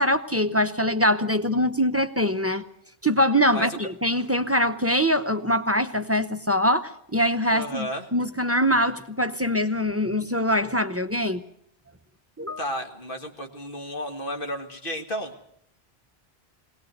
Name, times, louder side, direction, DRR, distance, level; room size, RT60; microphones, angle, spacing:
voice 1, 0.0-2.6 3.0-11.4 12.4-12.6, equal, 15° right, 10 dB, 0.7 m, -23 dB
voice 2, 7.5-8.1 12.6-15.3, equal, 55° left, 4 dB, 2.0 m, -32 dB
20.5 x 19.0 x 8.0 m, 0.71 s
omnidirectional pair, 1.1 m